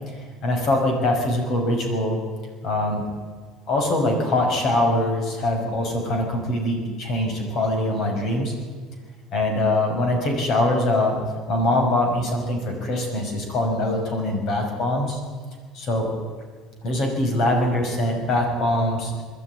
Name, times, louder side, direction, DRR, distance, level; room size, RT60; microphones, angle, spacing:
voice 1, 0.4-2.2 2.6-3.1 3.7-8.5 9.3-11.2 11.5-15.2 15.7-16.1 16.8-19.1, left 1 dB, 50° left, 3 dB, 5.8 m, -23 dB
21.5 x 13.0 x 9.5 m, 1.5 s
cardioid pair, 140°, 0 cm